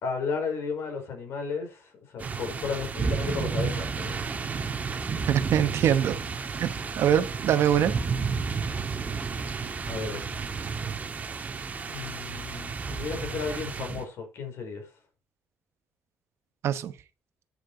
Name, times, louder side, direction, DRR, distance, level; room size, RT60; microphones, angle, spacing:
voice 1, 0.0-4.2 9.9-10.2 11.9-14.9, left 5 dB, 65° left, 5.0 m, -34 dB
sound 1, 2.2-14.0, right 5 dB, 35° right, 1.5 m, -32 dB
voice 2, 5.3-6.2 6.6-6.7 7.0-7.9 16.6-16.9, right 10 dB, 70° right, 1.1 m, -23 dB
9.9 x 6.6 x 5.0 m
cardioid pair, 110°, 5 cm